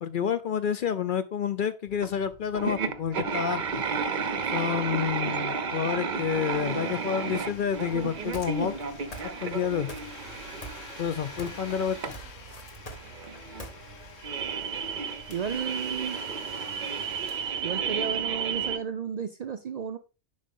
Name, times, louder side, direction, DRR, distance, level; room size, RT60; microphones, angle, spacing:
voice 1, 0.0-3.8 4.5-8.7 9.4-9.9 11.0-12.0, left 8 dB, 55° left, 0.6 m, -29 dB
sound 1, 2.0-2.1 2.5-18.8, right 5 dB, 50° right, 0.7 m, -33 dB
Domestic sounds home sounds, 6.0-18.6, left 6 dB, 85° left, 1.4 m, -48 dB
sound 2, 8.3-8.8 9.1-9.6 9.9-10.4 10.6-11.7 11.9-13.7, equal, 35° left, 1.1 m, -42 dB
voice 2, 15.3-16.2 17.6-20.0, right 7 dB, 80° right, 0.3 m, -33 dB
7.4 x 5.2 x 3.7 m
omnidirectional pair, 1.3 m